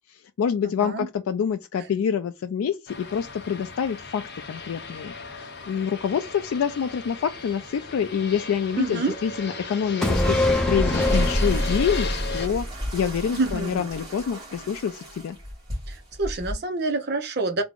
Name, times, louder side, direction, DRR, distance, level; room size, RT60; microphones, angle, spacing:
voice 1, 0.1-12.7 12.9-15.4, left 7 dB, 80° left, 0.3 m, -27 dB
Fixed-wing aircraft airplane, 2.9-12.5, left 4 dB, 50° left, 0.6 m, -36 dB
voice 2, 8.8-9.1 13.3-13.8 15.9-17.6, right 3 dB, 50° right, 0.5 m, -27 dB
sound 1, 10.0-13.6 13.9-14.0, left 1 dB, 5° left, 0.5 m, -24 dB
sound 2, 10.5-16.5, equal, 20° right, 1.9 m, -37 dB
3.4 x 2.0 x 3.5 m
head